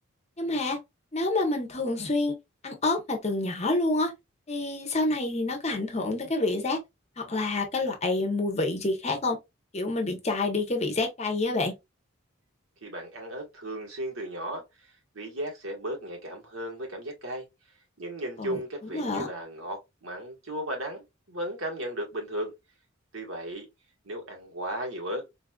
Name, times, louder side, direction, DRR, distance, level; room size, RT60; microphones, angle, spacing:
voice 1, 0.4-0.8 1.1-2.3 2.6-4.1 4.5-6.8 7.2-9.4 9.7-11.7 18.4-18.6 18.9-19.3, left 2 dB, 30° left, 0.8 m, -28 dB
voice 2, 12.8-17.4 18.0-22.5 23.1-23.7 24.0-25.2, right 1 dB, 80° right, 1.4 m, -35 dB
4.0 x 2.4 x 2.2 m
head